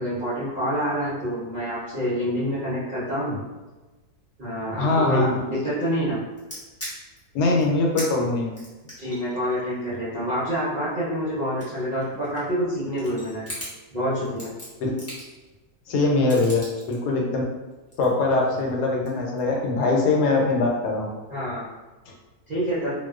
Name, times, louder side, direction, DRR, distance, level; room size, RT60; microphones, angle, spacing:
voice 1, 0.0-3.4 4.4-6.2 9.0-13.4 13.9-14.5 18.5-18.7 21.3-21.7 22.5-22.9, equal, 60° right, -11 dB, 0.5 m, -27 dB
voice 2, 4.7-5.3 7.3-8.6 14.8-14.9 15.9-16.6 16.9-17.4 18.0-21.1, left 3 dB, 85° left, -1 dB, 1.1 m, -22 dB
sound 1, 6.4-7.2 7.6-7.7 7.9-8.1 8.5-10.9 11.4-12.6 12.9-13.7 14.2-15.5 16.3-16.9 17.7-18.7 19.0-19.4, equal, 15° left, 0.5 m, -39 dB
2.5 x 2.1 x 2.3 m, 1.2 s
omnidirectional pair, 1.7 m